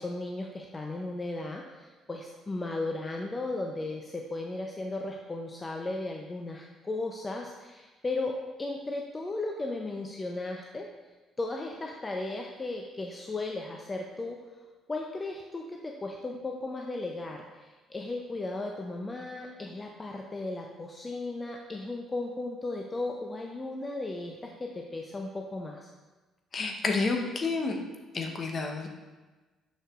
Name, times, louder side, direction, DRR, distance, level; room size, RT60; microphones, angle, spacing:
voice 1, 0.0-8.3 8.6-10.9 11.4-14.4 14.9-25.9, left 2 dB, 25° left, 1 dB, 0.6 m, -36 dB
voice 2, 26.5-27.8 28.1-28.9, left 3 dB, 45° left, 3 dB, 0.9 m, -29 dB
6.4 x 6.4 x 2.5 m, 1.2 s
supercardioid pair, 60°, 0 cm